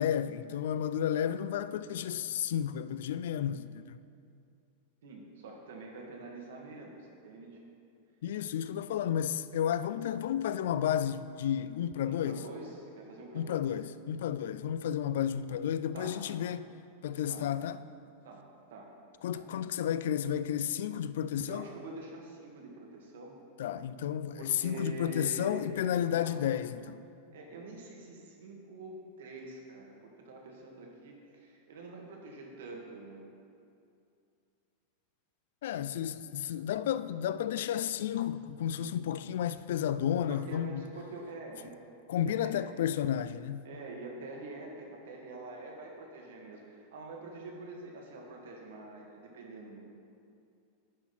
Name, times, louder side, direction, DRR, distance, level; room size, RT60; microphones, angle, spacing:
voice 1, 0.0-4.0 8.2-12.4 13.3-16.7 17.0-17.8 19.2-21.6 23.6-27.0 35.6-40.8 42.1-43.7, left 9 dB, 75° left, 0.3 m, -32 dB
voice 2, 5.0-7.6 12.0-13.6 15.9-16.2 17.3-17.5 18.2-18.9 19.3-19.5 21.5-23.4 24.4-26.4 27.3-33.2 40.3-41.8 42.1-42.6 43.6-49.8, right 2 dB, 85° right, 1.7 m, -46 dB
10.5 x 3.9 x 5.8 m
supercardioid pair, 170°, 0 cm